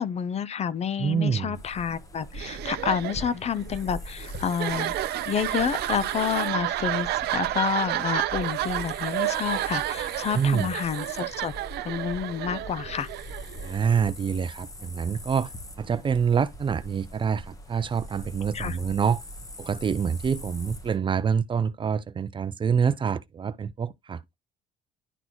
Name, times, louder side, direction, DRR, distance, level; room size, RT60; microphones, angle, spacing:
voice 1, 0.0-4.9 5.3-11.5 11.8-13.1 18.5-18.8, left 7 dB, 40° left, 0.6 m, -29 dB
voice 2, 1.0-1.6 10.3-10.7 13.6-15.5 15.8-19.2 19.6-24.4, right 6 dB, 30° right, 0.5 m, -26 dB
sound 1, 1.5-21.0, equal, 20° left, 1.4 m, -42 dB
sound 2, 2.3-14.0, right 15 dB, 75° right, 0.6 m, -31 dB
11.0 x 3.9 x 3.0 m
cardioid pair, 110°, 17 cm